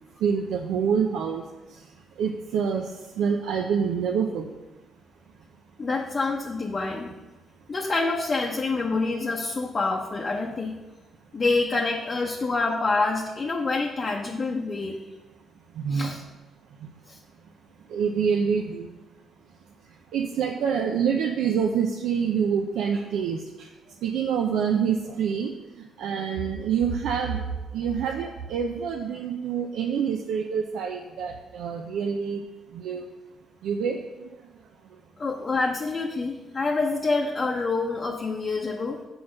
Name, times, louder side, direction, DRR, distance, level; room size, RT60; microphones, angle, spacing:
voice 1, 0.2-1.4 2.2-2.9 3.2-4.6 15.8-16.2 17.9-18.9 20.1-23.7 24.0-25.5 26.0-27.4 27.7-32.4 32.7-33.1 33.6-34.0, right 7 dB, 85° right, 2 dB, 0.5 m, -26 dB
voice 2, 5.8-7.1 7.7-10.8 11.3-15.0 15.9-16.2 17.1-17.2 35.2-39.0, left 3 dB, 35° left, 0 dB, 0.7 m, -27 dB
6.3 x 4.8 x 6.1 m, 1.1 s
cardioid pair, 90°, 0 cm